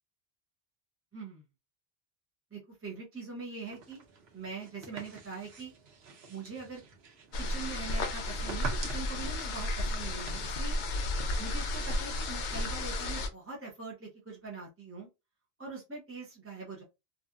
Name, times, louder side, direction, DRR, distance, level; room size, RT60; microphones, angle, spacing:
voice 1, 1.1-1.4 2.5-4.0 4.3-5.7 6.3-6.8 7.4-10.8 11.4-15.1 15.6-16.8, right 4 dB, 15° right, -3 dB, 0.6 m, -43 dB
sound 1, 3.6-10.3, right 4 dB, 85° right, 1.0 m, -46 dB
sound 2, 7.3-13.3, left 1 dB, 60° left, 0.6 m, -33 dB
2.7 x 2.3 x 2.3 m, 0.25 s
omnidirectional pair, 1.1 m